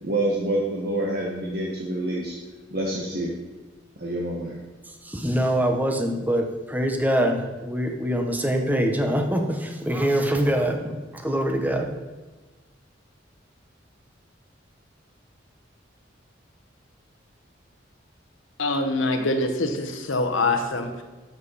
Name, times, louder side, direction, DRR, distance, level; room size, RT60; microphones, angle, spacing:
voice 1, 0.0-2.3 2.7-3.3 4.0-4.6, right 1 dB, 50° right, -3 dB, 1.4 m, -27 dB
voice 2, 5.0-11.9, right 1 dB, 10° right, 3 dB, 1.0 m, -24 dB
voice 3, 18.6-21.0, left 2 dB, 90° left, 5 dB, 1.3 m, -24 dB
12.0 x 7.4 x 4.2 m, 1.2 s
head